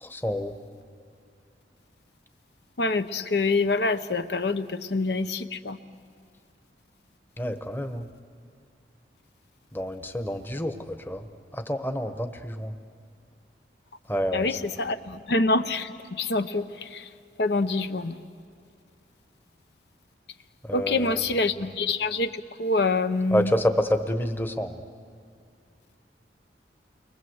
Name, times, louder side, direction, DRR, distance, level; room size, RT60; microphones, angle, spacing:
voice 1, 0.0-0.5 7.4-8.1 9.7-11.2 11.5-12.7 14.1-14.6 20.6-21.3 23.3-24.8, equal, 10° left, 7 dB, 1.0 m, -28 dB
voice 2, 2.8-5.8 14.3-17.1 17.4-18.1 20.7-23.5, left 3 dB, 70° left, 9 dB, 0.9 m, -26 dB
30.0 x 23.0 x 8.0 m, 2.3 s
head